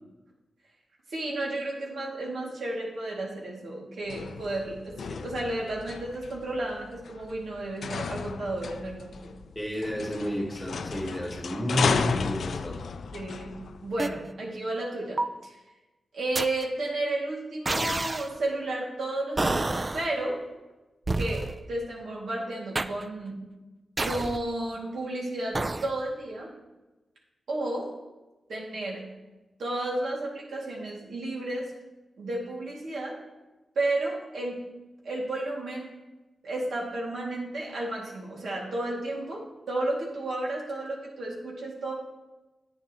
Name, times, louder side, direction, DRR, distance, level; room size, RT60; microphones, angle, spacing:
voice 1, 1.1-9.4 13.1-15.6 16.1-20.4 21.1-23.4 24.0-26.5 27.5-27.9 28.5-29.0 29.6-31.7 32.2-33.2 33.8-34.6 35.0-35.9 36.4-41.9, right 2 dB, 75° right, -3 dB, 2.2 m, -32 dB
sound 1, 4.1-14.2, left 5 dB, 70° left, 0.4 m, -34 dB
voice 2, 9.5-12.8, equal, 5° left, -2 dB, 1.4 m, -31 dB
sound 2, 14.0-14.1 15.2-15.5 16.3-16.6 17.6-18.3 19.4-20.1 21.1-21.6 22.7-23.1 24.0-24.5 25.5-25.9, right 2 dB, 25° right, 0.3 m, -28 dB
9.9 x 9.2 x 2.9 m, 1.1 s
wide cardioid pair, 160°, 0 cm